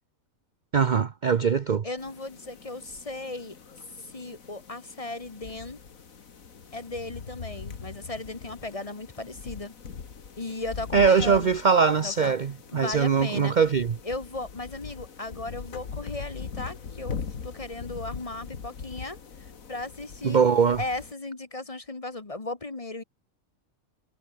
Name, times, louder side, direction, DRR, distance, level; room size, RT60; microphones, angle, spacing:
voice 1, 0.7-1.8 10.9-13.9 20.2-20.8, right 6 dB, 45° right, 0.7 m, -22 dB
voice 2, 1.8-3.6 4.0-5.8 6.7-9.7 10.4-11.5 12.0-12.3 12.7-13.5 14.0-19.2 19.7-20.4 20.8-23.0, left 2 dB, 25° left, 1.3 m, -36 dB
sound 1, 2.0-21.1, left 6 dB, 70° left, 2.2 m, -41 dB
omnidirectional pair, 1.5 m